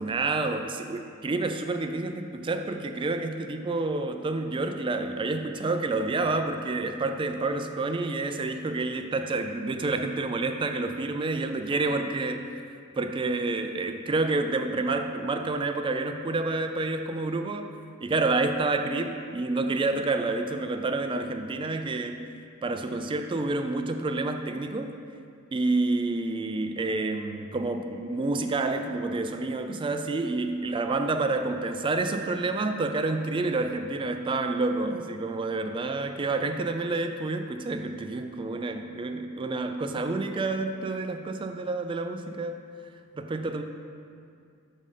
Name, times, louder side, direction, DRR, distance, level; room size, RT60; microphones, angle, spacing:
voice 1, 0.0-12.5 13.0-17.7 18.0-22.2 22.6-24.9 25.5-42.6 43.2-43.6, right 3 dB, 25° right, 6 dB, 0.3 m, -29 dB
5.3 x 5.2 x 5.6 m, 2.4 s
head